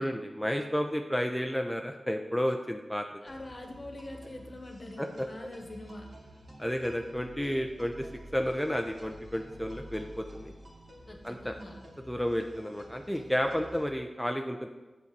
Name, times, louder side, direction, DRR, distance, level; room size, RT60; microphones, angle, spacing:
voice 1, 0.0-3.1 5.0-5.3 6.6-8.1 8.3-10.5 11.2-11.5 12.1-14.7, equal, 5° left, 3 dB, 0.6 m, -31 dB
voice 2, 3.2-6.1 11.1-11.8, left 1 dB, 45° left, 3 dB, 1.3 m, -44 dB
sound 1, 3.2-13.8, equal, 55° right, 2.2 m, -50 dB
7.1 x 4.2 x 6.7 m, 1.2 s
cardioid pair, 45°, 0 cm